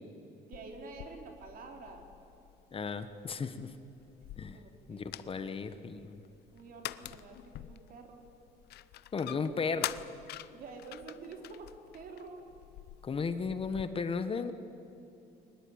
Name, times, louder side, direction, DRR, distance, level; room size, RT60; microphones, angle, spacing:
sound 1, 0.5-13.9, left 14 dB, 75° left, 0.7 m, -46 dB
voice 1, 0.5-2.1 4.5-5.1 6.5-8.2 10.5-11.7 11.9-12.4, right 4 dB, 60° right, 3 dB, 4.0 m, -48 dB
voice 2, 2.7-3.8 4.4-4.6 4.9-6.2 9.1-9.9 13.0-14.5, left 5 dB, 35° left, 10 dB, 1.3 m, -35 dB
22.5 x 20.0 x 8.8 m, 2.8 s
cardioid pair, 110°, 17 cm